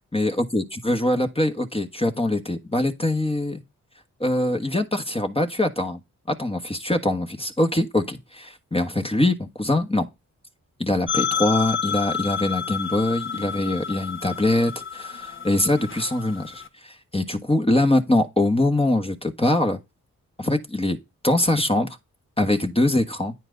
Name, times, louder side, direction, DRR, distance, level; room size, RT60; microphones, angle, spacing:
voice 1, 0.1-3.6 4.2-6.0 6.3-10.1 10.8-19.8 20.4-21.0 21.2-21.9 22.4-23.3, left 1 dB, 15° left, 1.4 m, -23 dB
sound 1, 11.1-16.7, left 7 dB, 35° left, 1.3 m, -30 dB
9.1 x 4.6 x 3.8 m
supercardioid pair, 45°, 34 cm